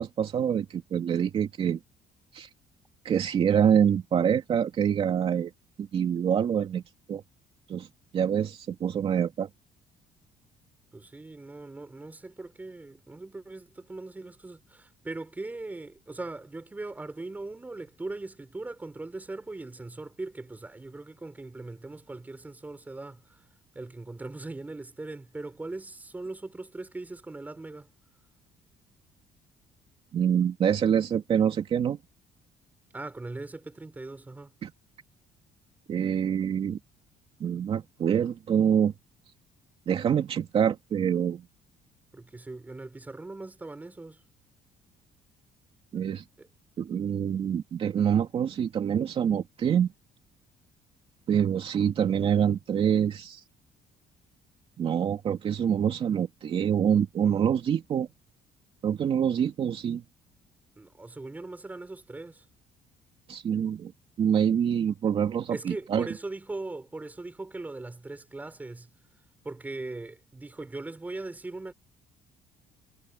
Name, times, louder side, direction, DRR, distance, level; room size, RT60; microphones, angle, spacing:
voice 1, 0.0-1.8 2.3-2.5 3.0-5.5 5.8-6.8 7.1-7.2 7.7-7.9 8.1-9.5 30.1-32.0 34.6-34.7 35.9-36.8 37.4-38.9 39.9-41.4 45.9-46.2 46.8-49.9 51.3-53.4 54.8-58.1 58.8-60.0 63.3-63.9 64.2-66.1, right 8 dB, 40° right, 2.7 m, -26 dB
voice 2, 10.9-23.4 23.7-27.9 32.9-34.5 42.1-44.2 46.4-46.5 60.8-62.4 65.5-68.9 69.4-71.7, right 2 dB, 10° right, 4.8 m, -40 dB
cardioid pair, 165°, 15 cm